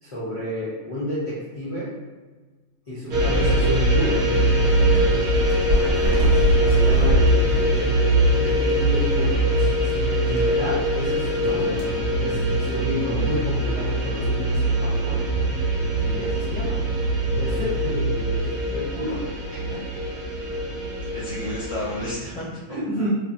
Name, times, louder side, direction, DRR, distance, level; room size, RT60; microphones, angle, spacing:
voice 1, 0.0-1.9 2.9-4.3 6.0-11.9 12.2-15.2 15.8-16.8 17.3-19.3 19.7-19.8 22.7-23.1, left 1 dB, 35° left, -9 dB, 0.5 m, -31 dB
sound 1, 3.1-22.1, right 1 dB, 90° right, 1.2 m, -22 dB
sound 2, 4.6-12.0, left 1 dB, 50° right, 0.9 m, -30 dB
sound 3, 11.4-17.7, left 1 dB, 85° left, 1.1 m, -35 dB
voice 2, 21.1-22.6, left 1 dB, 5° right, -10 dB, 1.0 m, -33 dB
3.1 x 2.3 x 2.5 m, 1.3 s
omnidirectional pair, 1.5 m